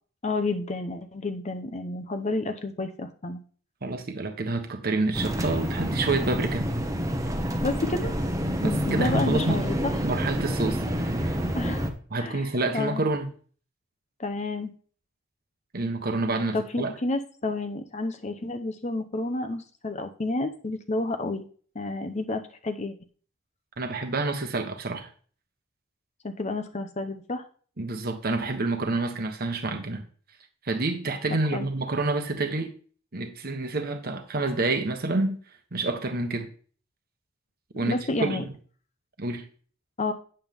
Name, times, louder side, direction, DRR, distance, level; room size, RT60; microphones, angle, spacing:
voice 1, 0.2-3.4 7.6-8.1 8.6-9.9 11.5-11.9 12.2-12.4 12.7-13.0 14.2-14.7 16.5-21.4 21.7-22.9 26.2-27.4 31.5-31.7 37.7-38.4 40.0-40.1, left 2 dB, 35° left, 8 dB, 0.8 m, -30 dB
voice 2, 3.8-6.6 8.6-9.6 10.0-11.4 12.1-13.3 15.7-16.9 23.8-25.1 27.8-30.0 30.6-32.7 33.1-35.4 35.7-36.5 37.7-38.5 39.2-39.4, right 2 dB, 50° right, 5 dB, 1.2 m, -28 dB
sound 1, 5.1-11.9, equal, 15° right, 1.0 m, -28 dB
9.0 x 7.8 x 3.5 m, 0.43 s
head